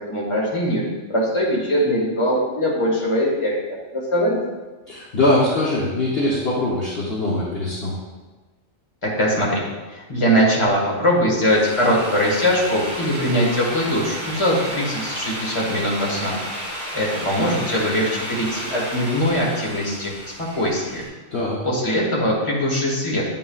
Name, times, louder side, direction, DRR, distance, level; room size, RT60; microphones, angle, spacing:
voice 1, 0.1-0.8 1.1-4.4 9.0-9.6 9.9-21.0 21.6-23.2, equal, 25° left, -4 dB, 1.5 m, -21 dB
voice 2, 4.9-7.9 21.3-21.6, left 1 dB, 50° left, -6 dB, 1.2 m, -22 dB
Drill, 11.2-21.1, equal, 60° right, 2.6 m, -32 dB
9.4 x 5.6 x 2.3 m, 1.2 s
omnidirectional pair, 1.4 m